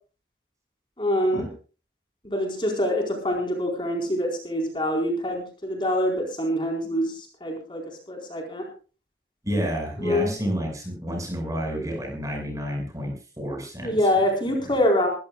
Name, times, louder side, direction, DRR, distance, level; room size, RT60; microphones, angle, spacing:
voice 1, 1.0-1.5 2.2-7.8 8.1-8.7 10.0-10.3 13.8-15.1, left 1 dB, 25° left, 1 dB, 4.4 m, -25 dB
voice 2, 9.4-14.0, equal, 20° right, 2 dB, 6.2 m, -30 dB
23.0 x 15.0 x 2.4 m, 0.36 s
head